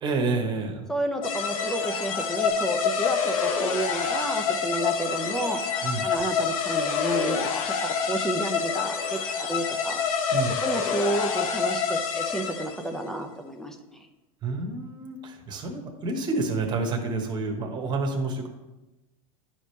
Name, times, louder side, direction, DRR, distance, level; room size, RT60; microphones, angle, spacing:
voice 1, 0.0-0.9 5.8-6.0 10.3-10.5 14.4-18.5, right 3 dB, 25° right, 3 dB, 1.3 m, -29 dB
voice 2, 0.9-5.6 6.0-7.4 7.8-10.0 10.6-14.1, right 1 dB, 5° left, 5 dB, 0.6 m, -31 dB
sound 1, 1.2-12.9, left 6 dB, 75° left, 0.9 m, -27 dB
11.0 x 5.0 x 3.3 m, 1.0 s
supercardioid pair, 135°, 18 cm